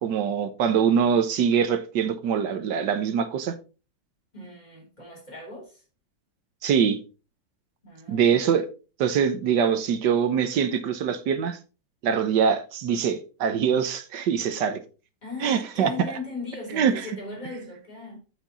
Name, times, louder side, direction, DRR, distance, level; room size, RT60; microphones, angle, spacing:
voice 1, 0.0-3.5 6.6-7.0 8.1-8.7 9.0-11.6 12.0-14.8 15.4-15.9 16.7-17.1, right 7 dB, 70° right, 1.5 m, -23 dB
voice 2, 4.3-5.8 7.8-8.3 15.2-18.2, left 3 dB, 20° left, 3.5 m, -38 dB
8.3 x 5.9 x 3.9 m
omnidirectional pair, 2.0 m